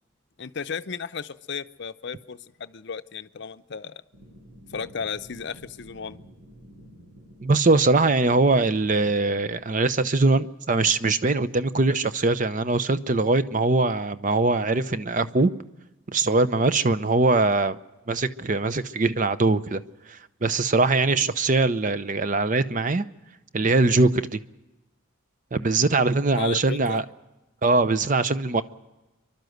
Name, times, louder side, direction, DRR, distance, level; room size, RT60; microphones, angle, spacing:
voice 1, 0.4-4.0 4.7-6.2 26.3-27.0, left 6 dB, 55° left, 12 dB, 0.6 m, -34 dB
sound 1, 4.1-9.6, equal, 75° right, 5.1 m, -49 dB
voice 2, 7.4-15.5 16.1-17.8 18.1-19.8 20.1-23.0 23.5-24.4 25.5-27.0 27.6-28.6, right 3 dB, 40° right, 13 dB, 0.7 m, -22 dB
29.5 x 12.0 x 7.9 m, 1.0 s
head